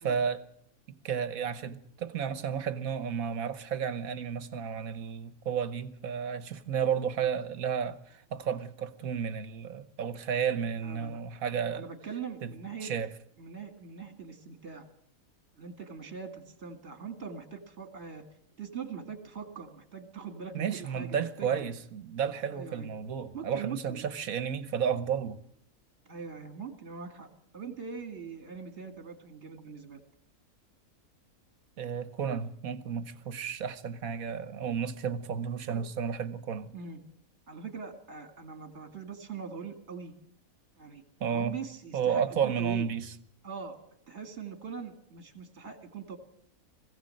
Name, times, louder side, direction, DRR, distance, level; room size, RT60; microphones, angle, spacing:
voice 1, 0.0-0.4 0.9-11.9 12.4-12.5 12.8-13.1 20.5-25.4 31.8-36.7 41.2-41.6 41.9-43.1, right 7 dB, 70° right, 1.5 m, -32 dB
voice 2, 10.8-11.2 11.7-12.9 13.4-14.8 15.6-18.2 18.6-21.7 22.5-22.9 23.3-24.1 26.1-27.3 27.5-30.0 35.7-35.8 36.7-37.0 37.5-40.1 40.8-41.0 41.3-42.9 43.4-43.8 44.1-46.2, right 6 dB, 50° right, 2.3 m, -42 dB
21.5 x 16.0 x 7.7 m
omnidirectional pair, 1.5 m